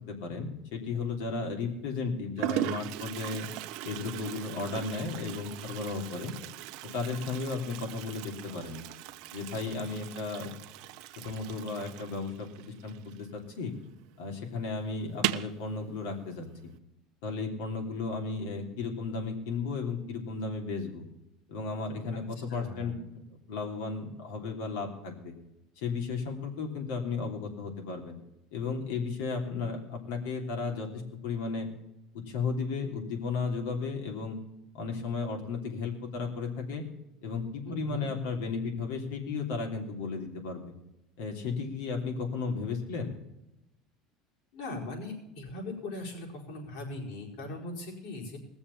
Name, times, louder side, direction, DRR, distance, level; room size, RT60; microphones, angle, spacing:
voice 1, 0.1-3.5 3.8-6.3 6.9-8.8 9.3-10.5 11.2-12.5 12.8-13.7 14.2-16.7 17.2-21.0 21.5-22.9 23.5-25.3 25.8-28.2 28.5-31.7 32.1-34.4 34.7-36.8 37.2-40.7 41.2-43.1, left 4 dB, 90° left, 2 dB, 3.2 m, -34 dB
Toilet flush, 0.9-1.3 2.1-2.2 2.4-13.7 13.9-14.0 14.3-14.4 15.1-15.6, right 14 dB, 65° right, 0.7 m, -38 dB
voice 2, 22.5-23.0 37.6-38.1 44.5-48.4, left 2 dB, 70° left, -2 dB, 4.9 m, -39 dB
19.0 x 7.1 x 7.2 m, 0.90 s
cardioid pair, 150°, 0 cm